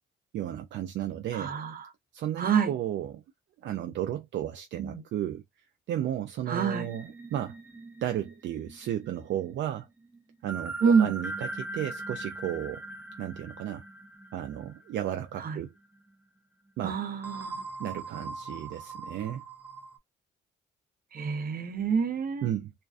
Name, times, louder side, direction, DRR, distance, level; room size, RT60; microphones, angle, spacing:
voice 1, 0.3-1.5 2.1-3.2 3.6-5.4 5.9-7.6 8.0-9.9 10.4-12.8 13.2-13.8 14.3-15.7 16.8-17.0 17.8-19.4 22.4-22.7, right 11 dB, 70° right, 0.4 m, -33 dB
voice 2, 1.3-1.7 2.4-2.7 4.8-5.0 6.5-6.9 10.8-11.1 15.4-15.6 16.8-17.6 21.1-22.5, right 6 dB, 50° right, 0.8 m, -27 dB
sound 1, 6.5-15.4 15.8-16.0 17.2-20.0, right 2 dB, 10° right, 0.6 m, -41 dB
2.4 x 2.2 x 2.3 m
cardioid pair, 90°, 20 cm